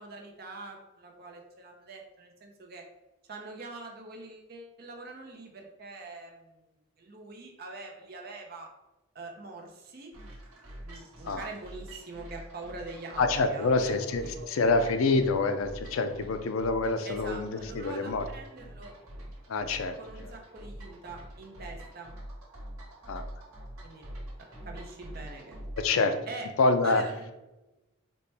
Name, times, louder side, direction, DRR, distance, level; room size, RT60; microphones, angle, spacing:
voice 1, 0.0-2.8 3.3-6.7 7.0-8.7 9.1-10.1 10.8-14.5 17.0-18.9 20.0-22.1 23.8-24.0 24.6-25.6 26.3-26.5 26.8-27.4, right 3 dB, 45° right, 1 dB, 0.6 m, -44 dB
sound 1, 10.1-26.0, right 1 dB, 85° right, 1.3 m, -45 dB
voice 2, 13.2-18.3 19.5-20.0 20.2-20.3 23.1-23.2 25.8-26.1 26.6-27.0, left 3 dB, 75° left, 8 dB, 0.4 m, -26 dB
4.1 x 2.2 x 3.3 m, 1.0 s
head